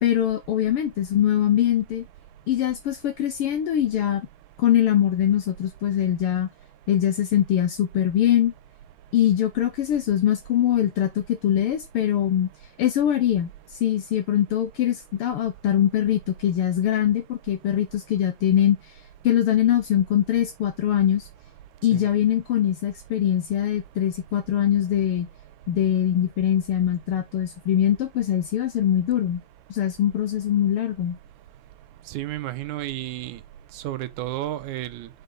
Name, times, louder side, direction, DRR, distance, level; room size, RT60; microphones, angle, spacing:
voice 1, 0.0-2.1 2.5-4.3 4.6-6.5 6.9-8.5 9.1-12.5 12.8-13.5 13.8-18.8 19.2-21.3 21.8-25.3 25.7-29.4 29.7-31.2, left 10 dB, 75° left, 1.3 m, -22 dB
voice 2, 32.1-33.4 33.7-35.1, right 14 dB, 75° right, 2.1 m, -32 dB
6.8 x 5.4 x 3.7 m
omnidirectional pair, 3.7 m